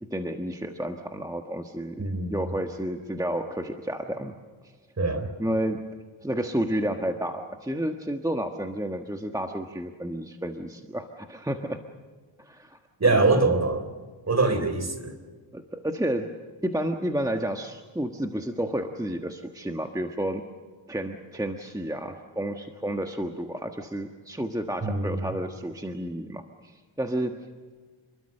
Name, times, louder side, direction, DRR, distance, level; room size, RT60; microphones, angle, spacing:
voice 1, 0.0-2.0 2.3-4.4 4.6-4.7 5.4-5.8 6.2-11.8 12.4-13.4 15.5-16.3 16.6-20.4 20.9-27.5, right 1 dB, 5° right, 4 dB, 1.4 m, -31 dB
voice 2, 2.0-2.4 5.0-5.3 13.0-13.9 14.3-15.2 24.8-25.3, right 3 dB, 30° right, 9 dB, 3.7 m, -23 dB
28.5 x 22.0 x 6.7 m, 1.4 s
wide cardioid pair, 130°, 49 cm